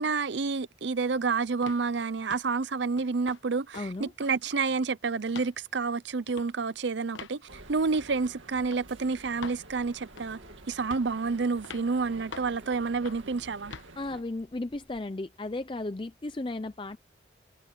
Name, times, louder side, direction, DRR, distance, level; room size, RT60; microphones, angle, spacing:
voice 1, 0.0-10.4 10.7-13.7, right 4 dB, 70° right, 0.6 m, -29 dB
sound 1, 1.6-1.9 2.3-2.5 3.0-3.4 3.7-3.9 4.2-4.8 5.3-5.5 6.3-6.5 7.1-7.4 7.9-8.1 8.7-8.8 9.4-9.6 10.2-10.5 10.9-11.2 11.6-11.9 12.3-12.6 13.1-13.3 13.7-13.9, left 5 dB, 80° left, 1.2 m, -44 dB
voice 2, 3.7-4.1 14.0-17.0, left 2 dB, 25° left, 0.5 m, -35 dB
sound 2, 7.4-15.0, equal, 5° right, 7.4 m, -59 dB
sound 3, 7.5-14.2, right 2 dB, 90° right, 2.3 m, -50 dB
head